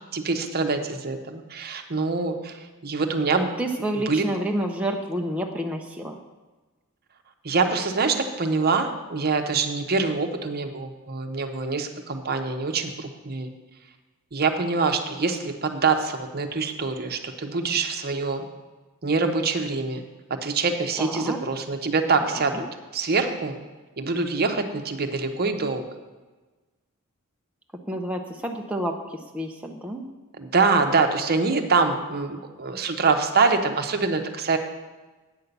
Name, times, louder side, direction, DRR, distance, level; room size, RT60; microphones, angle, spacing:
voice 1, 0.1-3.5 4.1-4.2 7.4-13.5 14.3-18.5 19.0-20.0 20.4-22.6 22.9-23.5 24.0-25.9 30.4-34.6, right 4 dB, 45° right, 6 dB, 0.9 m, -25 dB
voice 2, 3.6-6.2 21.0-21.4 22.3-22.6 27.9-30.0, right 1 dB, 5° right, 1 dB, 0.6 m, -29 dB
8.9 x 5.6 x 8.0 m, 1.2 s
head